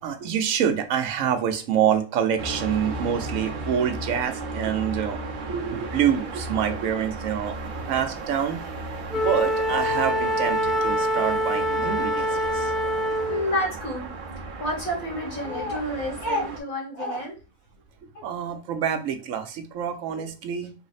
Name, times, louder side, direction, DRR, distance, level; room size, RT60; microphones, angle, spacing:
voice 1, 0.0-5.2 5.5-8.6 9.1-12.7 18.0-20.7, right 8 dB, 70° right, 7 dB, 1.0 m, -26 dB
sound 1, 2.4-16.6, right 2 dB, 50° right, 0.7 m, -35 dB
Wind instrument woodwind instrument, 9.1-13.5, equal, ahead, 0.4 m, -25 dB
voice 2, 13.3-14.1 14.6-17.3 18.1-18.2 20.1-20.2, left 1 dB, 75° left, -3 dB, 2.2 m, -29 dB
4.0 x 2.1 x 3.9 m, 0.33 s
omnidirectional pair, 1.5 m